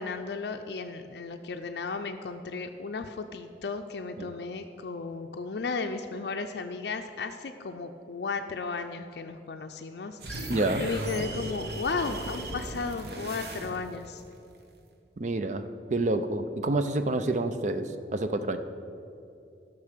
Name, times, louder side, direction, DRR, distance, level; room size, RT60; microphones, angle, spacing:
voice 1, 0.0-10.5 10.8-14.2, left 4 dB, 70° left, 5 dB, 0.5 m, -34 dB
sound 1, 10.2-14.1, right 1 dB, 60° right, 1.2 m, -37 dB
voice 2, 10.5-10.9 15.2-18.6, right 2 dB, 40° right, 9 dB, 0.4 m, -28 dB
12.0 x 6.1 x 6.6 m, 2.7 s
head